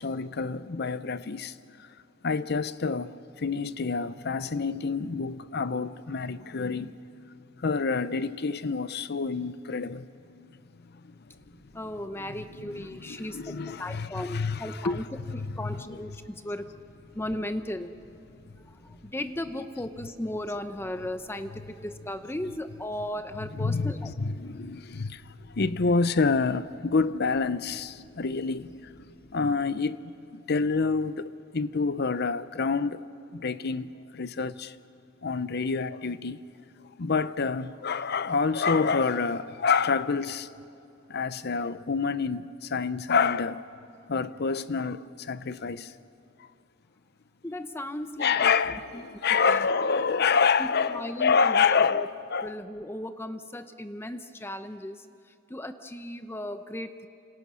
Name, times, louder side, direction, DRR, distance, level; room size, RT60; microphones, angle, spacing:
voice 1, 0.0-1.9 2.2-7.0 7.6-10.1 11.0-11.1 12.2-12.3 12.6-15.0 15.3-16.0 23.5-33.0 33.3-34.7 35.2-36.4 37.0-40.5 41.1-43.6 44.1-45.9 48.2-52.6, left 5 dB, 55° left, 0.7 m, -28 dB
sound 1, 11.2-29.2, equal, 70° left, 6.9 m, -58 dB
voice 2, 11.7-15.1 15.3-16.6 17.1-17.9 18.7-24.1 47.4-48.5 48.9-49.0 49.5-49.6 50.6-52.1 52.4-55.1 55.5-57.1, left 1 dB, 10° left, 0.7 m, -36 dB
29.5 x 27.0 x 6.2 m
head